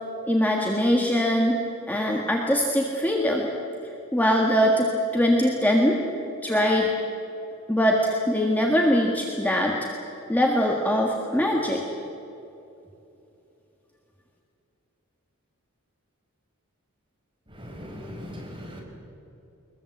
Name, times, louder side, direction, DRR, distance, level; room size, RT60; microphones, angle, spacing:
voice 1, 0.2-1.6 1.9-3.5 4.1-6.0 6.4-6.9 7.7-9.8 10.3-11.8, equal, 5° left, -1 dB, 1.7 m, -22 dB
voice 2, 17.6-18.8, equal, 20° right, -2 dB, 5.8 m, -39 dB
22.0 x 22.0 x 8.0 m, 2.9 s
head